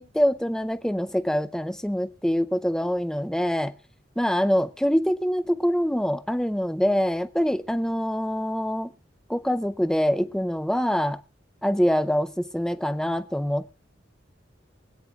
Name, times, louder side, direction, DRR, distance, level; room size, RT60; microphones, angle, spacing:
voice 1, 0.0-3.7 4.2-8.9 9.3-11.2 11.6-13.6, equal, 5° left, 0.5 m, -24 dB
24.5 x 9.1 x 2.3 m
head